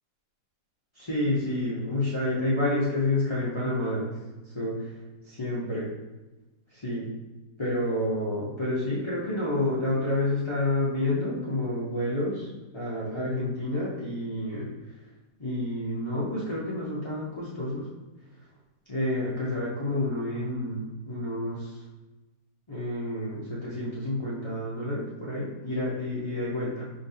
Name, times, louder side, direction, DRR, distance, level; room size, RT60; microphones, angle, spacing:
voice 1, 0.9-4.1 4.4-4.9 5.2-5.9 6.7-7.1 7.6-12.5 12.7-14.7 15.4-17.9 18.9-21.8 22.7-26.9, left 1 dB, 45° left, -9 dB, 0.3 m, -29 dB
5.1 x 2.9 x 2.7 m, 1.1 s
omnidirectional pair, 1.7 m